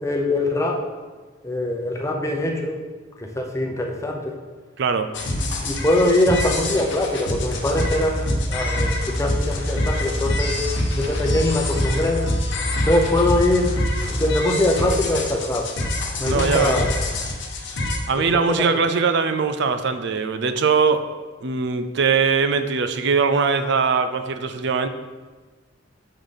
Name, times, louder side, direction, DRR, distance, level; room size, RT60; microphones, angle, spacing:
voice 1, 0.0-0.8 1.4-2.8 3.2-4.4 5.3-10.6 10.9-12.3 12.8-13.8 14.1-15.7 16.2-16.9 18.2-18.7, left 1 dB, 15° left, 1 dB, 0.7 m, -23 dB
voice 2, 4.8-5.1 16.2-16.8 18.1-21.1 21.4-24.9, right 5 dB, 60° right, 9 dB, 0.5 m, -21 dB
sound 1, 5.1-18.0, left 1 dB, 60° left, 0.9 m, -25 dB
6.4 x 3.9 x 5.1 m, 1.3 s
head